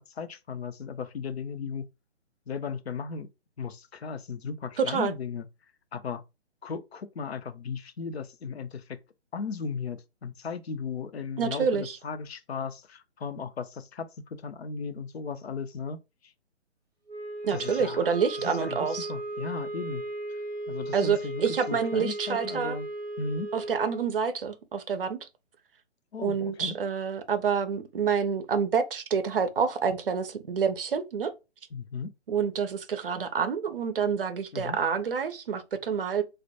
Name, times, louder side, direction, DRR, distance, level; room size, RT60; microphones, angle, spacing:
voice 1, 0.0-1.8 2.5-3.3 3.6-5.5 5.9-6.2 6.6-8.8 9.3-14.1 14.4-16.0 17.5-18.1 18.4-20.0 20.7-22.9 23.2-23.5 26.1-26.8 31.7-32.1 34.5-34.8, left 5 dB, 65° left, 0.5 m, -36 dB
voice 2, 4.8-5.1 11.4-12.0 17.4-19.1 20.9-22.8 23.5-25.3 26.2-31.3 32.3-36.2, right 6 dB, 55° right, 0.5 m, -28 dB
sound 1, 17.1-24.0, right 1 dB, ahead, 0.4 m, -36 dB
2.1 x 2.1 x 2.8 m
figure-of-eight pair, 140°, 35 cm